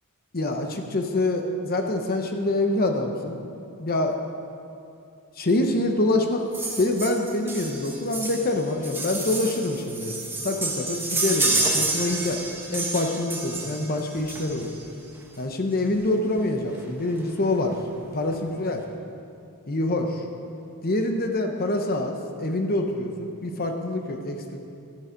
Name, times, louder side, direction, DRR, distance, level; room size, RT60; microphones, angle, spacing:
voice 1, 0.3-3.4 3.8-4.2 5.4-6.4 6.8-10.2 10.4-12.4 12.7-14.7 15.4-17.8 18.1-18.8 19.7-20.2 20.8-24.6, left 2 dB, 45° left, 4 dB, 0.9 m, -25 dB
sound 1, 6.5-14.9 16.0-16.1 16.4-16.5 16.7-16.9 17.2-17.8 18.3-18.4, right 2 dB, 10° right, 1.3 m, -29 dB
13.0 x 11.0 x 5.2 m, 2.5 s
head